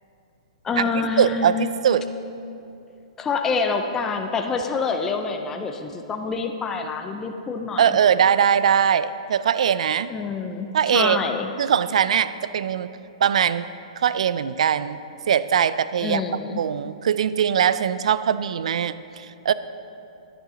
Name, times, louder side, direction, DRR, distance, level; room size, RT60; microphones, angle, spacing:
voice 1, 0.6-1.7 3.2-8.0 10.1-11.5 16.0-16.6, left 4 dB, 10° left, 5 dB, 0.4 m, -27 dB
voice 2, 1.2-2.1 7.8-10.1 10.7-11.2 11.6-12.9 13.2-13.7 14.0-15.0 15.3-16.2 16.6-19.5, right 8 dB, 70° right, 15 dB, 0.3 m, -21 dB
10.5 x 10.0 x 3.8 m, 2.7 s
hypercardioid pair, 160°, 4 cm